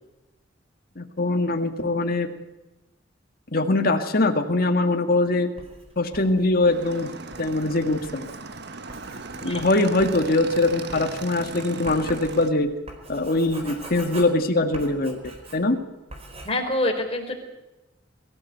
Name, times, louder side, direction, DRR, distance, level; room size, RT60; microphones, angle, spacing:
voice 1, 1.0-2.3 3.5-5.5 6.0-8.3 9.4-12.7 13.1-15.2 15.5-15.8, left 2 dB, 50° left, 5 dB, 2.0 m, -22 dB
Writing, 5.6-15.8 16.1-16.5, right 1 dB, 35° right, 4.2 m, -43 dB
Motorcycle / Engine, 6.6-12.5, right 3 dB, 60° right, 1.4 m, -38 dB
voice 2, 16.4-17.4, left 1 dB, 30° left, 2 dB, 4.4 m, -25 dB
22.0 x 15.0 x 8.1 m, 1.0 s
head